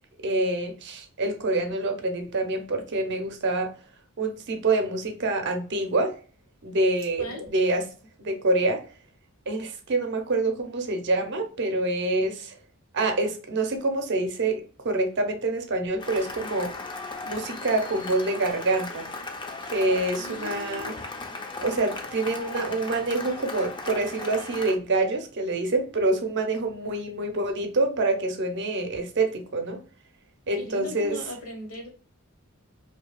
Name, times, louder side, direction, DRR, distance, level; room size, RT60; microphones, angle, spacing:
voice 1, 0.2-3.7 4.2-6.1 6.6-7.9 8.2-8.8 9.5-12.5 12.9-16.7 17.3-19.1 19.7-20.9 21.6-29.8 30.5-31.2, right 2 dB, 55° right, 0.6 m, -26 dB
Cheering / Applause, 16.0-24.8, left 3 dB, 20° left, 0.4 m, -37 dB
voice 2, 20.1-21.0 30.6-31.9, left 2 dB, 75° left, 1.3 m, -38 dB
2.7 x 2.7 x 2.3 m
head